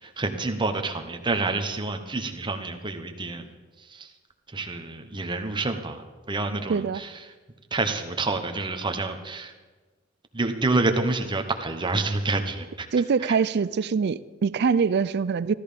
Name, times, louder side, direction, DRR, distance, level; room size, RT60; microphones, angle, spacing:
voice 1, 0.0-3.5 3.8-4.1 4.5-7.3 7.7-9.5 10.3-12.9 13.2-13.4, right 3 dB, 25° right, 6 dB, 1.0 m, -28 dB
voice 2, 6.7-7.0 12.9-15.5, right 5 dB, 55° right, 17 dB, 0.4 m, -24 dB
13.5 x 13.5 x 5.2 m, 1.3 s
head